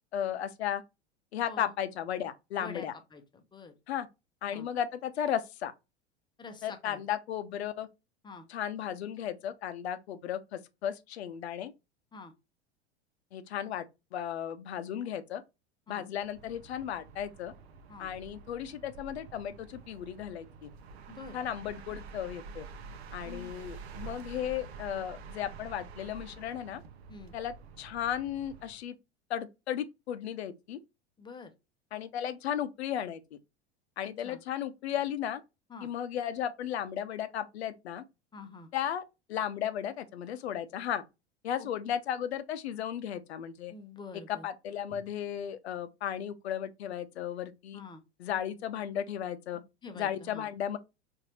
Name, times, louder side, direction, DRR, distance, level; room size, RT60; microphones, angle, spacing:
voice 1, 0.1-0.8 1.3-2.9 3.9-4.1 4.4-5.7 6.6-7.9 8.5-11.7 13.3-13.9 14.1-15.4 15.9-17.5 18.0-20.7 21.3-22.7 23.1-26.8 27.3-29.0 29.3-30.8 31.9-33.4 34.0-35.4 35.8-38.0 38.7-39.0 39.3-41.0 41.4-43.7 44.3-47.8 48.2-49.6 50.0-50.8, left 10 dB, 75° left, 0.6 m, -35 dB
voice 2, 1.4-1.7 2.6-3.7 4.5-4.7 6.4-7.0 8.2-8.5 12.1-12.3 15.9-16.0 17.9-18.1 21.1-21.4 23.2-23.5 27.1-27.3 31.2-31.5 34.2-34.4 35.7-35.9 38.3-38.7 41.6-41.7 43.7-44.5 47.7-48.0 49.8-50.5, left 4 dB, 15° left, 0.6 m, -47 dB
sound 1, 16.2-28.8, right 5 dB, 70° right, 0.7 m, -48 dB
4.1 x 2.6 x 2.8 m
figure-of-eight pair, 85°, 33 cm